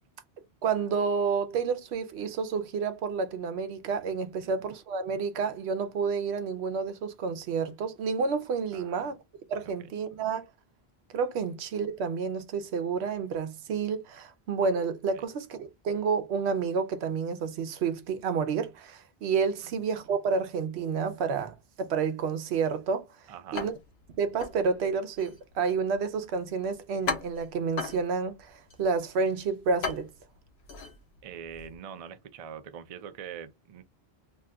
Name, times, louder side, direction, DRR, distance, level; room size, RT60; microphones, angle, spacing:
voice 1, 0.6-9.1 9.5-10.5 11.1-23.1 23.5-23.7 24.2-30.1, right 5 dB, 85° right, 0.9 m, -30 dB
voice 2, 8.7-9.1 9.6-9.7 15.1-15.2 19.6-19.7 23.3-23.7 31.2-33.8, right 8 dB, 55° right, 0.4 m, -43 dB
sound 1, 23.5-31.8, left 4 dB, 75° left, 0.9 m, -39 dB
2.7 x 2.2 x 3.6 m
omnidirectional pair, 1.1 m